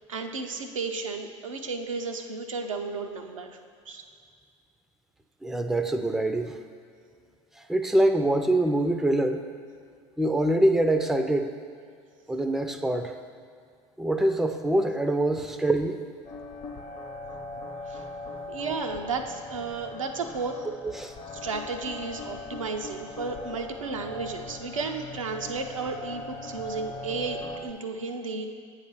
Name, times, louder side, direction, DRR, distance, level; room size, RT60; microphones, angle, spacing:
voice 1, 0.1-3.6 3.9-4.0 17.9-18.0 18.5-20.6 21.4-28.5, right 4 dB, 85° right, 4 dB, 0.5 m, -33 dB
voice 2, 5.4-6.6 7.6-9.4 10.2-11.5 12.3-13.2 14.0-16.0 20.8-21.2, right 1 dB, ahead, 7 dB, 0.4 m, -24 dB
sound 1, 16.2-27.7, left 2 dB, 30° left, 0.7 m, -40 dB
8.3 x 3.2 x 5.9 m, 2.2 s
figure-of-eight pair, 70°, 16 cm